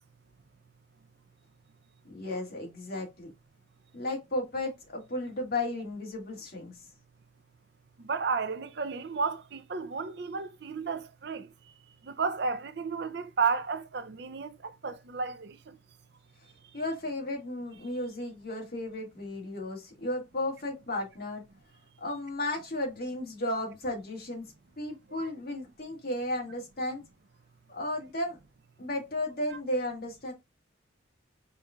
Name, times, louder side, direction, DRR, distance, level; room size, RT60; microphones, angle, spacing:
voice 1, 2.0-3.3 3.9-6.7 16.7-21.4 22.0-27.0 27.7-28.4 28.8-30.3, left 1 dB, 50° left, 2.0 m, -34 dB
voice 2, 8.0-11.5 12.0-15.8 25.1-25.3, right 5 dB, 55° right, 0.5 m, -33 dB
5.2 x 4.1 x 2.3 m
head